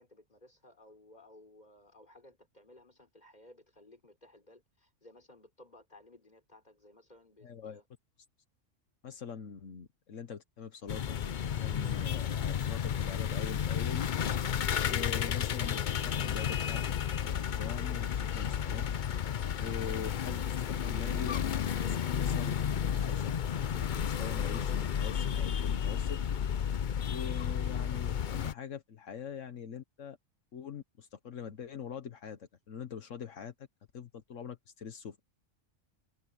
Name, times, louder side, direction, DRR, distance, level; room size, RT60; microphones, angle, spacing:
voice 1, 0.0-7.9, left 1 dB, 35° left, 4.6 m, -58 dB
voice 2, 7.4-7.8 9.0-11.3 11.6-14.1 14.8-16.8 17.2-18.9 19.6-26.2 27.1-30.2 30.5-33.5 33.9-35.2, left 7 dB, 80° left, 1.5 m, -43 dB
sound 1, 10.9-28.5, left 8 dB, 50° left, 0.7 m, -32 dB
omnidirectional pair, 1.3 m